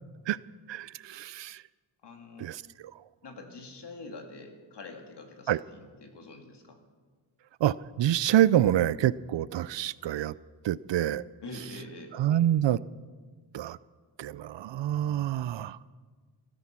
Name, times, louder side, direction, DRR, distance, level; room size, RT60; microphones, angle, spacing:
voice 1, 0.7-1.6 2.4-2.6 5.5-5.6 7.6-10.3 10.6-11.2 12.2-12.8 13.5-13.8 14.2-15.8, right 12 dB, 70° right, 19 dB, 0.5 m, -26 dB
voice 2, 2.0-2.5 3.2-6.8 11.4-12.5, left 2 dB, 60° left, 3 dB, 2.4 m, -45 dB
16.5 x 14.0 x 6.1 m, 1.5 s
wide cardioid pair, 105°, 45 cm